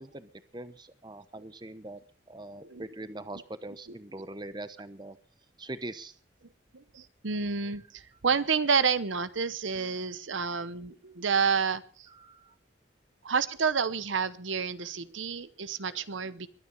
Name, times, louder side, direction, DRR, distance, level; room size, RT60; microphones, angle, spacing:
voice 1, 0.0-2.0 2.3-5.2 5.6-6.2 12.1-12.5, right 2 dB, 25° right, 12 dB, 0.9 m, -42 dB
voice 2, 2.6-2.9 3.9-4.0 6.7-12.1 13.2-16.5, right 5 dB, 85° right, 14 dB, 0.9 m, -29 dB
22.5 x 9.6 x 5.4 m, 0.40 s
head